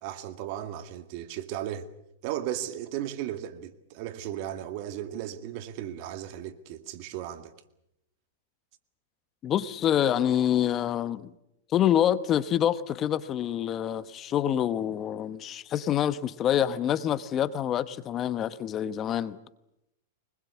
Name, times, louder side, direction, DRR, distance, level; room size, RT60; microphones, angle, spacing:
voice 1, 0.0-1.9 2.2-7.5, right 11 dB, 50° right, 2.1 m, -35 dB
voice 2, 9.4-11.3 11.7-19.4, left 10 dB, 30° left, 1.0 m, -26 dB
24.0 x 21.0 x 8.4 m
hypercardioid pair, 125°, 0 cm